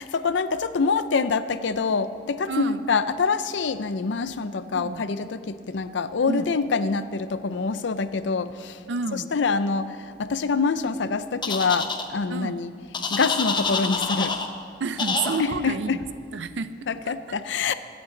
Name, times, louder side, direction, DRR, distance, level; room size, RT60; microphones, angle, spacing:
voice 1, 0.0-8.8 9.1-12.7 13.1-14.4 15.4-16.0 16.9-17.7, left 4 dB, 85° left, 13 dB, 0.6 m, -25 dB
voice 2, 2.5-2.9 4.7-5.1 6.3-6.5 8.9-9.3 12.3-12.6 14.8-16.1 16.3-16.7 17.0-17.2, right 4 dB, 80° right, 12 dB, 0.6 m, -30 dB
sound 1, 11.4-12.0 12.9-14.5 15.0-15.4, left 4 dB, 25° left, 0.8 m, -27 dB
24.0 x 8.5 x 3.9 m, 2.3 s
head